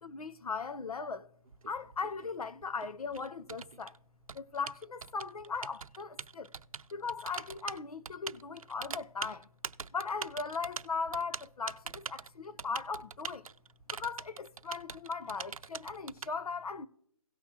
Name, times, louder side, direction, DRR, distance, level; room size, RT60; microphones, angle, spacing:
voice 1, 0.0-1.3 1.7-4.0 4.3-6.5 6.9-9.5 9.9-13.5 13.9-16.9, left 4 dB, 80° left, 0.8 m, -38 dB
Typing, 1.5-16.3, right 6 dB, 70° right, 0.6 m, -43 dB
17.5 x 6.1 x 2.8 m
hypercardioid pair, 175°, 19 cm